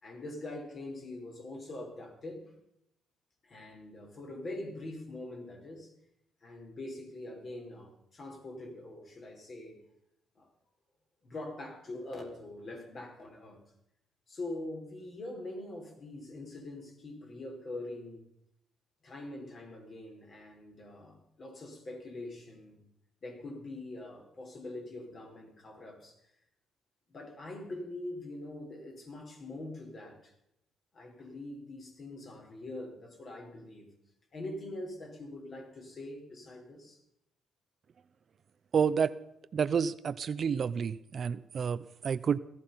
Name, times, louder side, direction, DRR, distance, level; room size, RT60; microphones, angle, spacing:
voice 1, 0.0-2.5 3.4-5.9 6.4-9.8 10.4-10.5 11.2-13.6 14.3-18.2 19.0-22.8 23.2-26.2 27.1-30.3 30.9-33.9 34.3-37.0, left 2 dB, 45° left, 2 dB, 4.8 m, -43 dB
voice 2, 38.7-39.1 39.5-42.4, right 7 dB, 50° right, 15 dB, 0.5 m, -29 dB
16.5 x 14.0 x 5.7 m, 0.81 s
cardioid pair, 90°, 0 cm